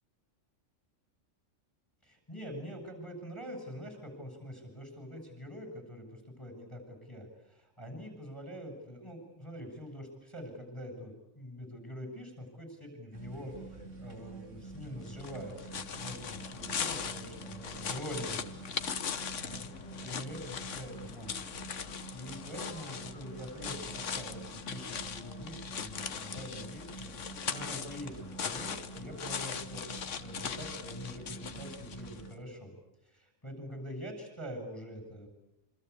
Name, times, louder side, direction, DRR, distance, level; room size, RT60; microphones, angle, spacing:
voice 1, 2.0-18.6 19.5-19.6 20.0-21.4 21.7-32.7 33.0-35.3, equal, 15° left, 5 dB, 7.8 m, -45 dB
sound 1, 13.1-32.3, right 2 dB, 75° right, 4.2 m, -47 dB
sound 2, 15.1-32.3, left 7 dB, 75° left, 1.5 m, -40 dB
27.0 x 25.5 x 8.5 m, 0.92 s
omnidirectional pair, 1.3 m